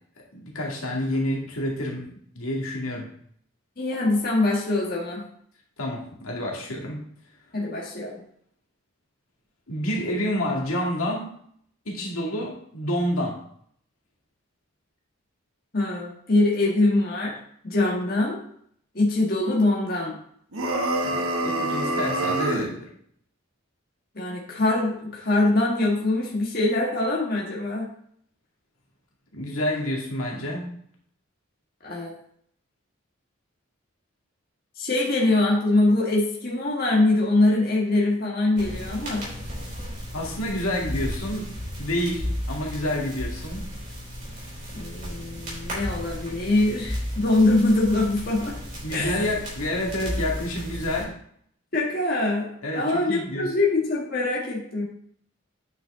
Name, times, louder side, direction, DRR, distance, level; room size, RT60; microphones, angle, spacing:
voice 1, 0.3-2.1 2.4-3.1 5.8-7.0 9.7-11.3 11.9-13.4 21.0-22.9 29.3-30.7 40.1-41.5 41.8-43.7 48.8-51.1 52.6-53.5, left 1 dB, 85° left, -2 dB, 2.1 m, -28 dB
voice 2, 3.8-5.3 7.5-8.2 15.7-17.3 17.6-18.4 18.9-20.2 24.1-27.9 31.8-32.2 34.8-39.3 44.7-48.6 48.9-49.1 51.7-52.5 52.7-54.8, left 2 dB, 45° left, -3 dB, 1.6 m, -23 dB
sound 1, 20.5-22.7, right 1 dB, 90° right, 1.1 m, -26 dB
sound 2, 38.6-51.0, equal, 35° right, 3.8 m, -34 dB
9.0 x 5.7 x 3.7 m, 0.64 s
head